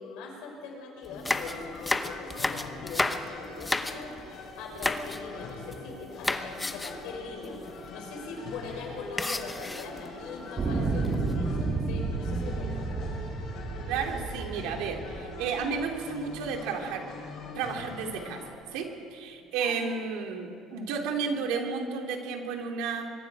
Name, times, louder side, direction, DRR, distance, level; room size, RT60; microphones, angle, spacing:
voice 1, 0.0-4.1 4.6-13.1 19.6-20.0, left 4 dB, 85° left, 1 dB, 5.5 m, -42 dB
sound 1, 1.0-4.3 4.8-5.2 5.5-5.9 6.2-7.1 7.4-7.5 7.8-8.0 9.2-10.1 10.8-11.3, left 2 dB, 10° left, 1.0 m, -32 dB
sound 2, 1.1-18.5, left 3 dB, 55° left, 5.2 m, -43 dB
sound 3, 10.6-15.8 16.5-16.6, right 3 dB, 35° right, 2.1 m, -31 dB
voice 2, 13.9-17.1 17.5-18.4 18.7-23.1, right 5 dB, 85° right, 2 dB, 3.0 m, -32 dB
25.0 x 23.0 x 4.9 m, 2.4 s
cardioid pair, 130°, 0 cm